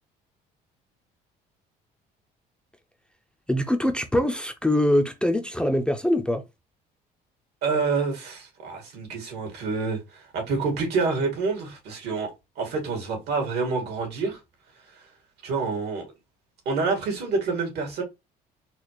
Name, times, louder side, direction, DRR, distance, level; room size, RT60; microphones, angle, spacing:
voice 1, 3.5-6.4, left 1 dB, 5° left, 0.5 m, -23 dB
voice 2, 7.6-12.3 12.6-14.4 15.4-16.1 16.7-18.0, right 4 dB, 80° right, 1.8 m, -27 dB
4.1 x 2.4 x 3.0 m
cardioid pair, 110°, 17 cm